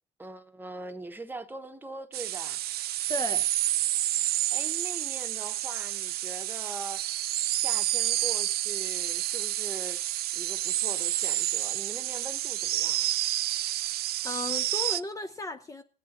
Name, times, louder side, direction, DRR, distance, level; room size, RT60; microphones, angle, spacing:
voice 1, 0.2-2.6 4.5-7.0 7.5-10.0 10.3-13.1, right 2 dB, 10° right, 1.0 m, -42 dB
sound 1, 2.1-15.0, right 14 dB, 65° right, 0.5 m, -29 dB
voice 2, 3.1-3.5 14.2-15.8, left 2 dB, 20° left, 0.6 m, -35 dB
17.0 x 8.6 x 4.2 m
cardioid pair, 110°, 17 cm